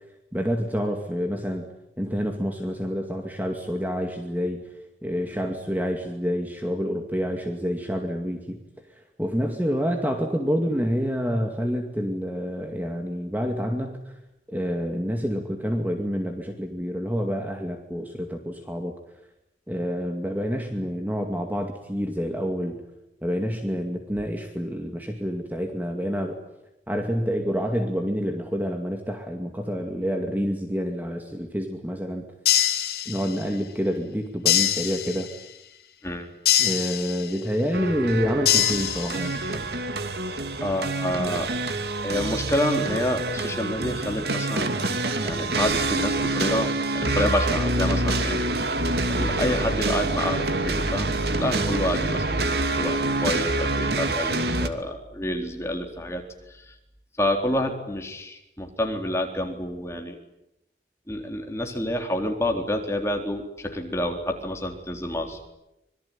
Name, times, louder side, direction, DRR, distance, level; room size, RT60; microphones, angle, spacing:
voice 1, 0.3-1.7 2.0-4.6 5.0-8.6 9.0-14.1 14.5-18.9 19.7-22.8 23.2-26.4 26.9-32.2 33.1-35.3 36.6-39.4, equal, 10° right, 4 dB, 2.3 m, -28 dB
sound 1, 32.4-33.5 34.4-35.5 36.4-37.5 38.4-39.5, left 11 dB, 65° left, 3.5 m, -24 dB
sound 2, 37.7-54.7, right 2 dB, 70° right, 2.7 m, -26 dB
voice 2, 40.6-41.5 42.0-44.7 45.2-48.4 49.1-51.1 51.4-56.2 56.5-56.6 57.2-60.2 61.1-65.5, left 1 dB, 15° left, 3 dB, 4.0 m, -28 dB
26.0 x 22.5 x 10.0 m, 0.90 s
head